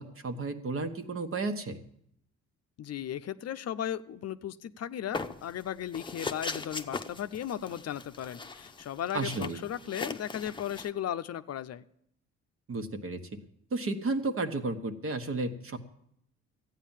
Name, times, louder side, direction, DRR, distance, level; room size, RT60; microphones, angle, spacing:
voice 1, 0.0-1.8 9.1-9.6 12.7-13.2 13.7-15.8, right 3 dB, 45° right, 7 dB, 1.4 m, -33 dB
voice 2, 2.8-11.8, left 10 dB, 55° left, 11 dB, 0.6 m, -36 dB
sound 1, 5.1-5.6 5.9-10.9, left 3 dB, 15° left, 0.8 m, -39 dB
13.5 x 9.3 x 7.4 m, 0.74 s
cardioid pair, 90°, 30 cm